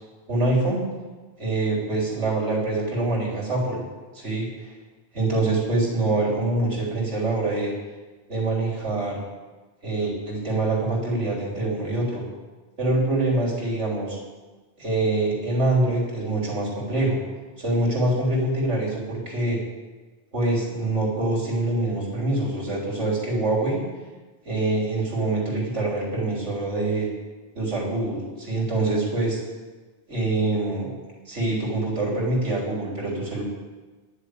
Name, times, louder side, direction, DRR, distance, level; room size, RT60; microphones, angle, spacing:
voice 1, 0.3-0.8 1.4-3.8 4.1-4.7 5.1-7.7 8.3-9.2 9.8-12.2 12.8-14.2 14.8-17.2 17.6-19.6 20.3-23.8 24.5-27.1 27.5-29.4 30.1-30.9 31.3-33.4, right 2 dB, 90° right, -4 dB, 3.9 m, -25 dB
11.0 x 7.4 x 8.3 m, 1.3 s
omnidirectional pair, 1.2 m